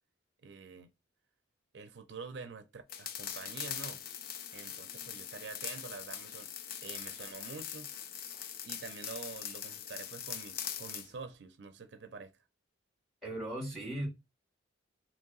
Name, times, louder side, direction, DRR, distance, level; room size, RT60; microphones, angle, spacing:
voice 1, 0.4-0.9 1.7-4.0 4.5-6.5 6.8-7.9 8.6-12.3, right 4 dB, 65° right, 0.4 m, -47 dB
sound 1, 2.9-11.1, left 9 dB, 50° left, 0.3 m, -42 dB
voice 2, 13.2-14.1, right 1 dB, ahead, 1.5 m, -37 dB
2.9 x 2.7 x 3.8 m
head